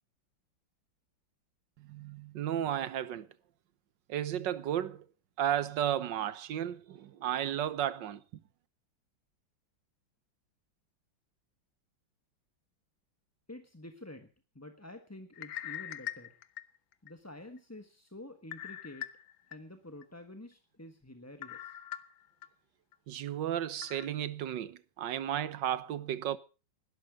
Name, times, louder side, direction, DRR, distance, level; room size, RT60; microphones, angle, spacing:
voice 1, 1.8-3.3 4.1-5.0 5.4-8.2 23.1-26.4, right 10 dB, 70° right, 1.6 m, -33 dB
voice 2, 13.5-14.3 14.5-16.3 17.0-19.1 19.5-21.8, left 1 dB, 10° left, 1.1 m, -49 dB
sound 1, 15.3-17.1 17.6-17.7 18.5-19.6 20.0-20.1 21.4-22.5 22.9-23.0 23.8-24.1, left 12 dB, 80° left, 1.8 m, -42 dB
20.5 x 12.0 x 5.2 m
omnidirectional pair, 2.1 m